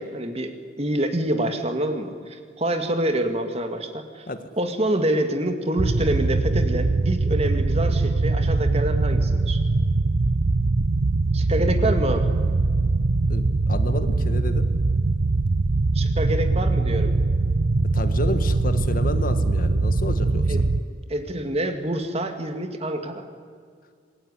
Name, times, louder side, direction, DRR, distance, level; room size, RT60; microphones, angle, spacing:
voice 1, 0.0-4.3 4.6-9.6 11.3-12.3 15.9-17.1 20.5-20.7 21.1-23.3, right 1 dB, 35° right, 7 dB, 2.3 m, -26 dB
sound 1, 5.8-20.8, right 3 dB, 70° right, 0.7 m, -22 dB
voice 2, 13.3-14.7 17.9-20.5, left 1 dB, 45° left, 10 dB, 1.6 m, -31 dB
26.5 x 21.0 x 10.0 m, 2.1 s
head